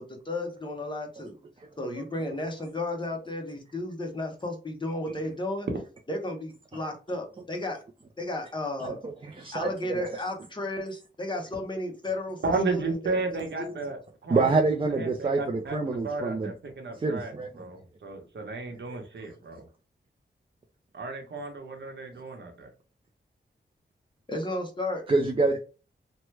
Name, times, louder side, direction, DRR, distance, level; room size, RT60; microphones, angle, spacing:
voice 1, 0.0-1.3 1.8-5.7 6.1-7.8 8.2-9.0 9.5-13.8 24.3-25.1, left 1 dB, 25° left, 2 dB, 0.8 m, -33 dB
voice 2, 8.8-10.0 14.3-16.5 17.0-17.5 18.9-19.0 25.1-25.6, right 3 dB, 30° right, 3 dB, 0.4 m, -27 dB
voice 3, 12.4-14.5 14.9-19.7 20.9-22.7, right 3 dB, 70° right, 4 dB, 0.9 m, -33 dB
3.0 x 2.1 x 3.2 m, 0.34 s
wide cardioid pair, 125°, 19 cm